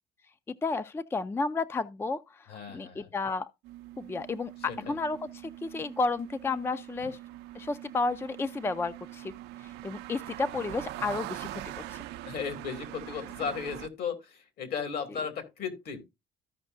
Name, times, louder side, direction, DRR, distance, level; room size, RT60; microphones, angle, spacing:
voice 1, 0.6-3.5 4.0-7.2 7.6-9.3 9.6-11.5 11.9-12.0, left 3 dB, 15° left, 0.4 m, -32 dB
voice 2, 2.5-3.1 4.7-5.0 12.2-16.0, left 6 dB, 65° left, 2.3 m, -35 dB
sound 1, 3.6-13.9, right 15 dB, 85° right, 0.5 m, -43 dB
14.0 x 5.3 x 2.5 m
cardioid pair, 110°, 17 cm